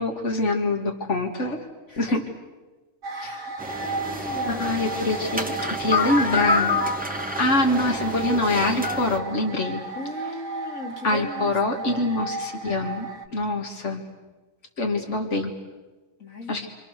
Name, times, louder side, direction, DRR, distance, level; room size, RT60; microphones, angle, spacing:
voice 1, 0.0-1.6 2.0-2.2 3.2-3.4 4.5-6.7 7.4-9.8 11.0-14.0 14.8-15.5 16.5-16.7, left 2 dB, 60° left, 2 dB, 2.6 m, -25 dB
voice 2, 1.9-2.2 3.1-4.7 9.9-12.0 16.2-16.7, left 1 dB, 80° left, 0 dB, 3.4 m, -38 dB
sound 1, 3.0-13.3, right 3 dB, 65° right, 1.4 m, -34 dB
sound 2, 3.6-9.2, left 2 dB, 5° right, 1.7 m, -28 dB
28.0 x 26.5 x 6.9 m, 1.3 s
omnidirectional pair, 1.4 m